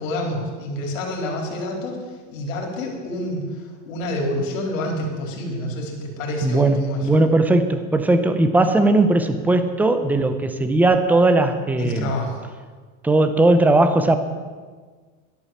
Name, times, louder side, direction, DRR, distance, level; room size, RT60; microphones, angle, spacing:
voice 1, 0.0-7.1 11.8-12.4, left 1 dB, 85° left, 0 dB, 4.1 m, -28 dB
voice 2, 6.4-12.1 13.0-14.2, right 2 dB, 5° right, 9 dB, 0.5 m, -18 dB
12.5 x 11.0 x 7.2 m, 1.5 s
supercardioid pair, 160°, 39 cm